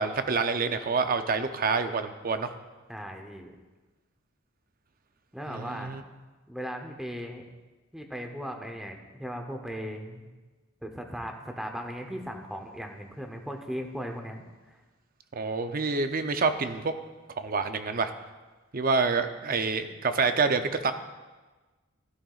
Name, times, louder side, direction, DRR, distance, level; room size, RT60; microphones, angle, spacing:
voice 1, 0.0-2.5 5.5-6.0 15.3-16.9 17.4-18.1 18.7-20.9, right 4 dB, 45° right, 8 dB, 0.6 m, -27 dB
voice 2, 2.9-3.5 5.3-6.0 6.5-7.4 7.9-10.3 10.8-14.8, equal, ahead, 3 dB, 0.8 m, -37 dB
12.5 x 12.0 x 2.4 m, 1.2 s
head